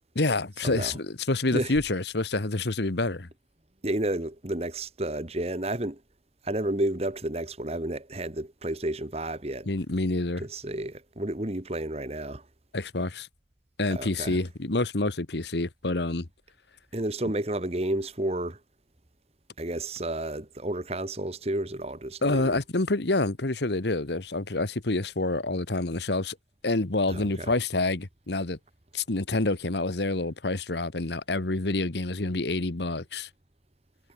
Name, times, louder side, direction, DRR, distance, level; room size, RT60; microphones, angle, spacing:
voice 1, 0.1-3.3 9.7-10.4 12.7-13.3 13.8-16.3 22.2-26.4 26.6-28.6 28.9-33.3, left 2 dB, 65° left, 1.4 m, -27 dB
voice 2, 3.8-6.0 6.4-9.7 10.4-12.4 13.9-14.4 16.9-18.6 19.6-22.6 27.1-27.5, right 1 dB, 35° right, 1.6 m, -31 dB
head